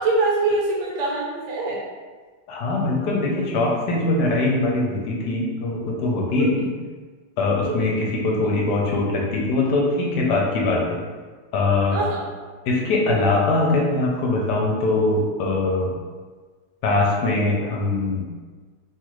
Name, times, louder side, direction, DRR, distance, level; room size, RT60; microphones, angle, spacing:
voice 1, 0.0-1.8 6.4-6.6 7.6-7.9 11.9-12.2, right 3 dB, 80° right, -3 dB, 1.4 m, -24 dB
voice 2, 2.5-6.7 7.4-11.0 11.5-12.0 12.7-15.9 16.8-18.2, left 2 dB, 75° left, -2 dB, 1.2 m, -22 dB
3.1 x 2.4 x 3.0 m, 1.4 s
omnidirectional pair, 1.9 m